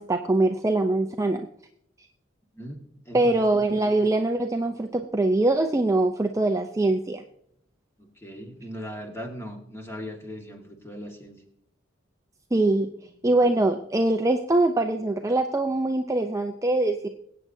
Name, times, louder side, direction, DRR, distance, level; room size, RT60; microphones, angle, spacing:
voice 1, 0.0-1.5 3.1-7.2 12.5-12.9 13.2-17.1, right 2 dB, 15° right, 4 dB, 0.5 m, -23 dB
voice 2, 3.0-3.5 8.0-11.4, equal, 15° left, 2 dB, 1.7 m, -39 dB
22.0 x 8.6 x 2.7 m, 0.70 s
head